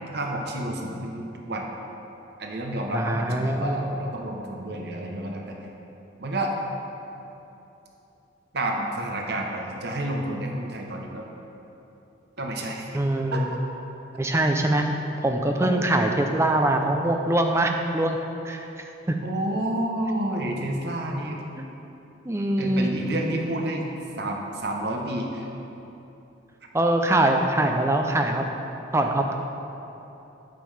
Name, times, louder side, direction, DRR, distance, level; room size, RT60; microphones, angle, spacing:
voice 1, 0.1-1.7 2.4-5.6 6.2-6.5 8.5-11.3 12.4-13.0 13.3-13.4 15.6-15.7 19.2-21.4 22.6-23.9 24.2-25.5, right 1 dB, 60° right, 1 dB, 0.9 m, -30 dB
voice 2, 2.9-3.8 12.9-13.5 14.2-14.8 15.2-18.2 18.4-19.2 21.6-21.7 22.3-22.9 26.7-28.4 28.9-29.3, right 1 dB, 15° right, 4 dB, 0.5 m, -23 dB
9.3 x 7.5 x 3.3 m, 3.0 s
head